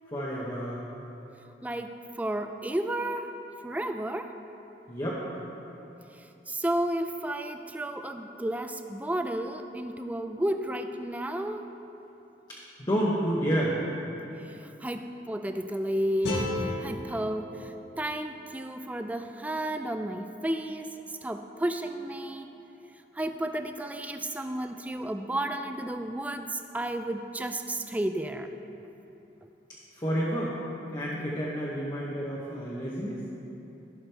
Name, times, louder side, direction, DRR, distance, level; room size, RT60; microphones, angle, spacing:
voice 1, 0.1-0.8 4.9-5.2 12.5-13.8 29.9-30.6 30.9-33.2, equal, 25° left, -5 dB, 0.9 m, -30 dB
voice 2, 1.6-3.4 3.6-4.3 6.1-11.7 14.4-20.9 21.2-22.5 23.1-28.5, right 1 dB, 10° right, 7 dB, 0.3 m, -32 dB
sound 1, 16.2-19.3, left 1 dB, 65° left, 1.5 m, -35 dB
16.0 x 6.1 x 3.4 m, 3.0 s
head